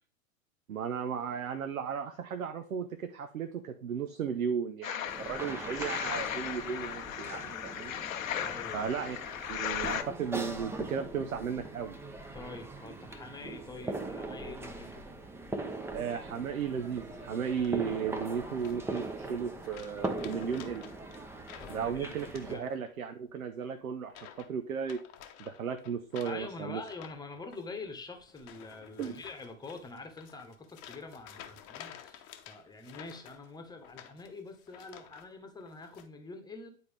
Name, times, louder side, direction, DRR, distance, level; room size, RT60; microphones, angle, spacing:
voice 1, 0.7-8.0 8.7-9.2 9.5-12.0 15.9-20.9 21.7-25.0 25.4-26.8 29.0-29.2, right 7 dB, 75° right, 8 dB, 0.8 m, -35 dB
sound 1, 4.8-10.0, left 10 dB, 70° left, 0.8 m, -37 dB
sound 2, 5.1-22.6, right 2 dB, 5° right, 0.6 m, -41 dB
voice 2, 8.4-8.9 12.3-15.0 21.6-22.2 22.5-22.6 26.2-36.7, left 3 dB, 10° left, 5 dB, 1.1 m, -45 dB
sound 3, 17.4-18.0 18.6-19.3 19.6-23.1 23.3-23.6 24.1-24.5 24.8-35.3 35.6-36.1, left 10 dB, 35° left, 0.9 m, -52 dB
9.5 x 4.3 x 3.4 m, 0.44 s
figure-of-eight pair, 100°, 42 cm